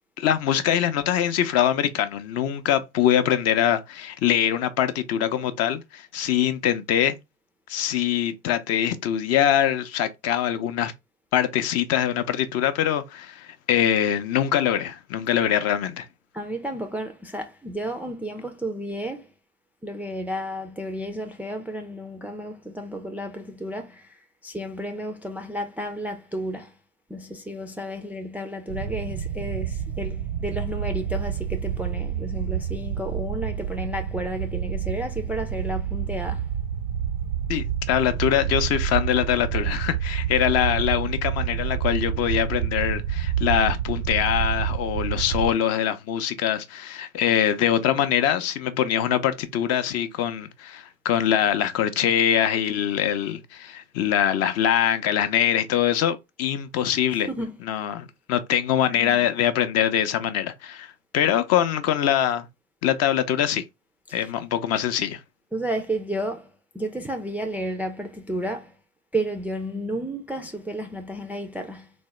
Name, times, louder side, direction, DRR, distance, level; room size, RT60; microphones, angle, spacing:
voice 1, 0.2-7.2 7.7-10.9 11.3-16.1 37.5-57.3 57.7-62.5 62.8-63.6 64.1-65.2, left 10 dB, 45° left, 0.6 m, -23 dB
voice 2, 16.3-19.3 19.8-26.7 27.1-36.5 57.3-57.5 58.9-59.2 64.1-64.3 65.5-68.8 69.1-71.9, right 1 dB, 5° right, 0.4 m, -32 dB
sound 1, 28.7-45.5, right 9 dB, 70° right, 0.6 m, -28 dB
3.4 x 2.0 x 3.1 m
hypercardioid pair, 85°, 35 cm